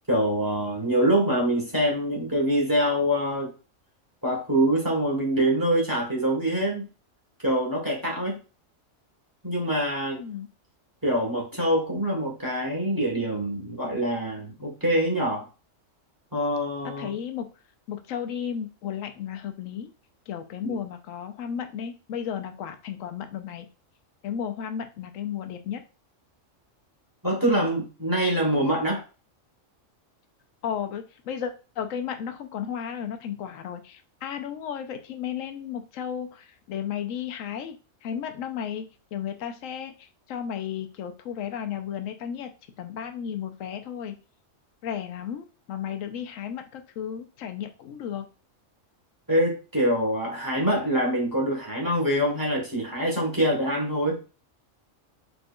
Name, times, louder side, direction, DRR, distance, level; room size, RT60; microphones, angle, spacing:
voice 1, 0.1-3.5 4.2-6.9 7.4-8.4 9.4-10.2 11.0-15.5 16.3-17.1 20.6-20.8 27.2-29.0 49.3-54.2, right 1 dB, 15° right, -3 dB, 1.2 m, -25 dB
voice 2, 10.2-10.5 17.0-17.5 17.9-19.9 20.3-23.7 24.2-25.8 30.6-37.8 38.0-42.5 42.8-44.1 44.8-48.2, left 8 dB, 85° left, 7 dB, 1.0 m, -34 dB
4.3 x 3.4 x 2.3 m, 0.33 s
omnidirectional pair, 1.3 m